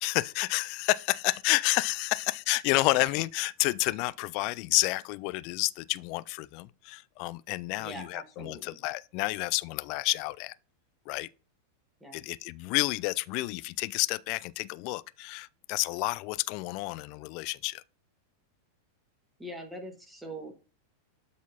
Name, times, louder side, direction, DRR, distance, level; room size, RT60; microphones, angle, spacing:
voice 1, 0.0-10.5 11.1-11.3 12.1-17.8, left 22 dB, 45° left, 0.3 m, -30 dB
voice 2, 7.8-8.8 12.0-12.2 19.4-20.5, right 1 dB, 10° right, 1.8 m, -43 dB
12.5 x 4.1 x 2.9 m
figure-of-eight pair, 90°, 0 cm